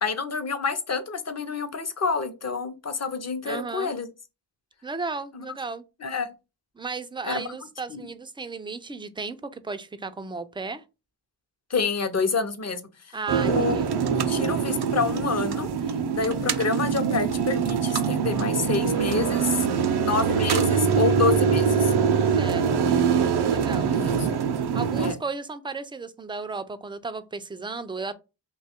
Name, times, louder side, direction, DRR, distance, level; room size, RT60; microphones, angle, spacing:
voice 1, 0.0-4.1 5.3-5.4 6.0-6.3 7.2-7.5 7.9-8.1 11.7-13.2 13.4-13.8 14.2-15.7 16.1-19.6 20.0-21.9 23.9-24.3 25.0-25.2, left 4 dB, 35° left, 0.7 m, -28 dB
voice 2, 3.4-3.9 4.8-5.8 6.8-10.8 13.1-13.9 22.2-23.9 24.7-28.1, right 4 dB, 10° right, 0.3 m, -34 dB
sound 1, 13.3-25.1, right 6 dB, 60° right, 0.5 m, -23 dB
2.9 x 2.3 x 4.2 m
cardioid pair, 50°, 44 cm